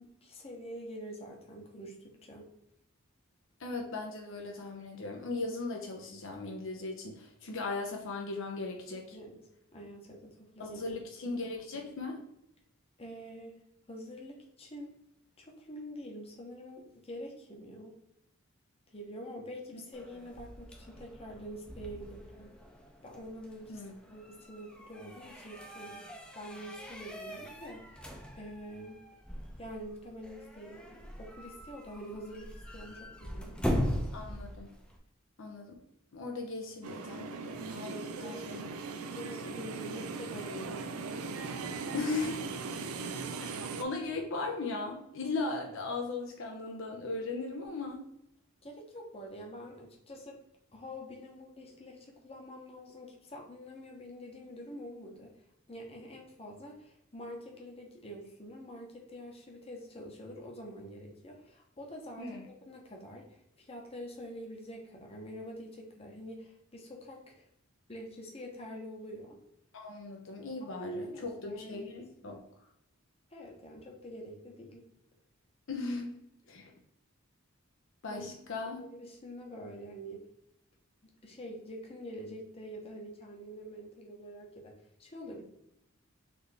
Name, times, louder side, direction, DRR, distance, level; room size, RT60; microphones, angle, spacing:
voice 1, 0.0-2.5 9.1-9.4 9.7-10.9 13.0-13.6 13.9-14.9 15.4-17.9 18.9-22.5 23.0-23.8 24.1-29.0 29.6-34.1 38.2-41.1 48.6-50.4 50.7-55.3 55.7-67.5 67.9-69.4 70.6-71.9 72.2-72.4 73.3-74.8 78.1-78.4 78.8-80.3 81.0-85.4, equal, 30° left, 0 dB, 0.9 m, -46 dB
voice 2, 3.6-9.2 10.6-12.2 23.7-23.9 34.1-34.7 35.4-35.7 36.1-38.7 41.9-42.4 43.4-48.1 62.2-62.5 69.7-72.4 75.7-76.2 76.5-76.7 78.0-78.8, left 3 dB, 65° left, 2 dB, 0.7 m, -38 dB
door squeaky, 19.9-35.0, equal, 5° left, 0.7 m, -40 dB
sound 1, 36.8-43.8, right 4 dB, 90° right, 0.5 m, -39 dB
4.1 x 3.3 x 3.3 m, 0.81 s
head